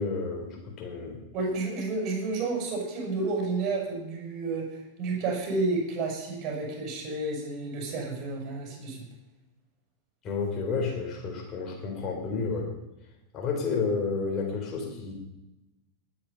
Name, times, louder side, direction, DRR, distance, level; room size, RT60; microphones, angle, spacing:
voice 1, 0.0-1.2 10.2-12.7 13.3-15.1, left 4 dB, 30° left, 1 dB, 4.3 m, -31 dB
voice 2, 1.3-9.1, right 3 dB, 35° right, 0 dB, 7.0 m, -31 dB
20.0 x 8.8 x 5.6 m, 0.97 s
figure-of-eight pair, 90°, 0 cm